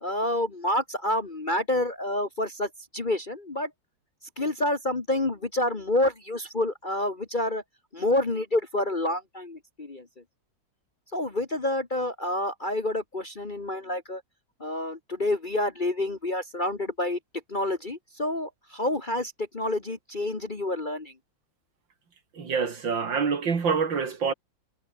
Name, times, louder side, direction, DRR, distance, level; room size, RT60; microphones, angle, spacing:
voice 1, 0.0-3.7 4.4-7.6 7.9-10.1 11.1-14.2 14.6-17.2 17.5-21.1, left 1 dB, 25° left, 1.5 m, -28 dB
voice 2, 22.4-24.3, right 5 dB, 75° right, 3.4 m, -26 dB
omnidirectional pair, 2.1 m